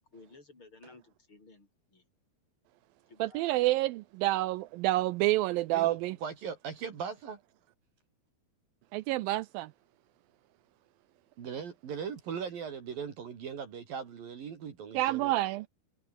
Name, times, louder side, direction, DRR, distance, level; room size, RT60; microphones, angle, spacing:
voice 1, 0.1-2.0 3.1-3.6, left 3 dB, 30° left, 7.9 m, -56 dB
voice 2, 3.2-6.2 8.9-9.7 14.9-15.7, right 17 dB, 80° right, 2.1 m, -28 dB
voice 3, 5.7-7.4 11.4-15.3, right 7 dB, 60° right, 4.4 m, -39 dB
omnidirectional pair, 4.6 m